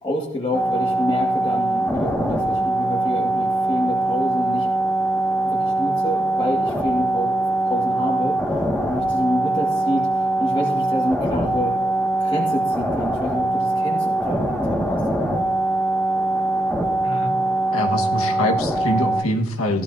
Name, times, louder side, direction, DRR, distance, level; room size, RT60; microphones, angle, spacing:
voice 1, 0.0-4.7 5.4-8.4 8.9-11.7 12.2-15.5, left 1 dB, 25° left, -3 dB, 1.7 m, -28 dB
sound 1, 0.5-19.2, right 2 dB, ahead, 1.8 m, -22 dB
voice 2, 17.0-17.3 17.7-19.8, left 1 dB, 90° left, 3 dB, 1.5 m, -24 dB
16.5 x 13.5 x 2.7 m, 0.77 s
head